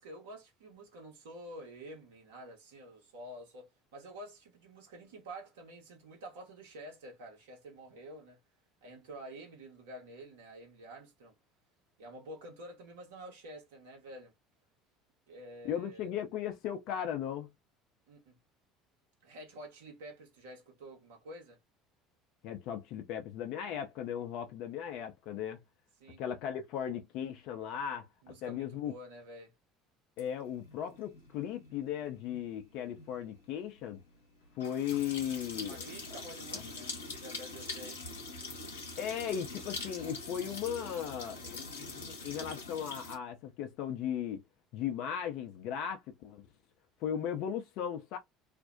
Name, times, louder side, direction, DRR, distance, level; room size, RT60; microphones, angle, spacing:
voice 1, 0.0-8.4 8.8-11.4 12.0-14.3 15.3-16.1 18.1-18.4 19.2-21.6 26.0-26.2 28.2-29.5 35.6-38.0, right 1 dB, 70° right, 1.0 m, -49 dB
voice 2, 15.6-17.5 22.4-25.6 26.2-28.1 28.4-28.9 30.2-34.0 34.6-35.8 36.5-36.6 39.0-44.4 44.7-46.4 47.0-48.2, left 9 dB, 60° left, 0.4 m, -37 dB
sound 1, 30.2-43.2, left 3 dB, 85° left, 0.7 m, -44 dB
2.4 x 2.0 x 2.5 m
figure-of-eight pair, 65°, 0 cm